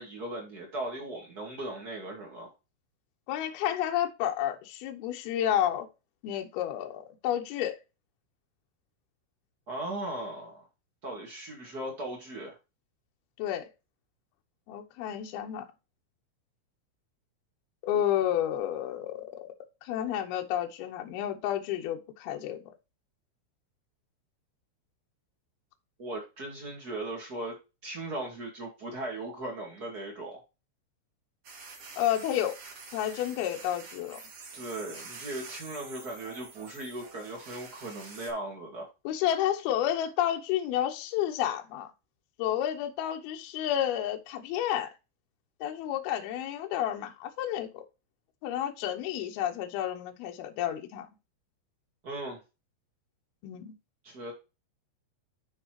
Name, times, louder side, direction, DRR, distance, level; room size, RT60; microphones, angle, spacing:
voice 1, 0.0-2.5 9.7-10.6 11.0-12.5 26.0-27.5 27.8-30.4 34.5-38.9 52.0-52.4 54.0-54.3, right 1 dB, 80° right, 0.8 m, -38 dB
voice 2, 3.3-5.9 6.2-7.8 13.4-13.7 14.7-15.7 17.8-19.3 19.8-22.6 32.0-32.6 32.9-34.2 39.0-41.9 42.4-44.9 45.6-47.8 48.4-51.1 53.4-53.7, left 11 dB, 80° left, 2.2 m, -30 dB
sound 1, 31.4-38.3, right 4 dB, 55° right, 1.6 m, -47 dB
12.5 x 4.4 x 3.1 m
omnidirectional pair, 5.8 m